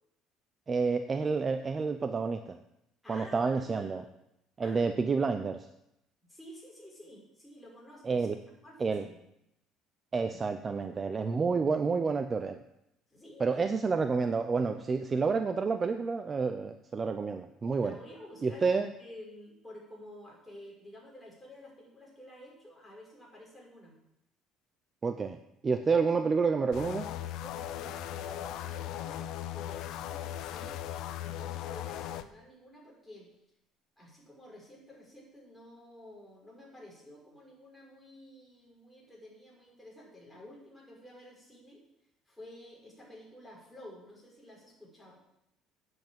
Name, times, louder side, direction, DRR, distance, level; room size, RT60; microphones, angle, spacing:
voice 1, 0.7-2.6 3.1-4.0 4.6-5.7 8.0-8.4 8.8-9.1 10.1-12.6 13.4-18.0 18.4-18.9 25.0-25.4 25.6-27.1, right 4 dB, 25° right, 9 dB, 0.6 m, -29 dB
voice 2, 3.0-4.1 4.6-4.9 6.3-8.3 8.6-9.1 10.3-10.4 13.1-13.8 17.8-18.7 19.0-24.0 27.4-29.2 29.5-33.3 34.0-41.8 42.3-45.2, left 1 dB, 5° left, -4 dB, 5.4 m, -51 dB
sound 1, 26.7-32.2, left 11 dB, 70° left, 0.7 m, -38 dB
9.1 x 7.9 x 7.8 m, 0.83 s
cardioid pair, 115°, 0 cm